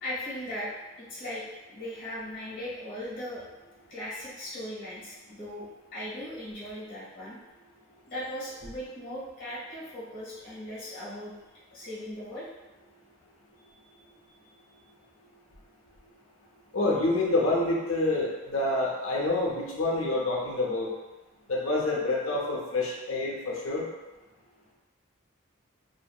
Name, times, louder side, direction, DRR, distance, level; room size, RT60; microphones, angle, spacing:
voice 1, 0.0-0.7 1.0-3.4 3.9-7.4 8.1-11.3 11.7-12.5, left 1 dB, 45° left, -8 dB, 1.2 m, -38 dB
voice 2, 16.7-20.9 21.5-23.8, left 2 dB, 85° left, -3 dB, 0.6 m, -27 dB
2.8 x 2.5 x 2.3 m, 1.1 s
head